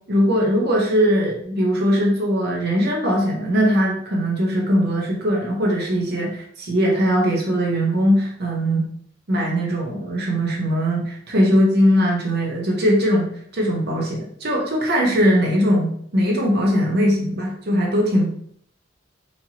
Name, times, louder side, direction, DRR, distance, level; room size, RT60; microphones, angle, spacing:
voice 1, 0.1-8.9 9.3-18.3, equal, 55° right, -2 dB, 0.8 m, -20 dB
4.4 x 2.9 x 2.8 m, 0.64 s
head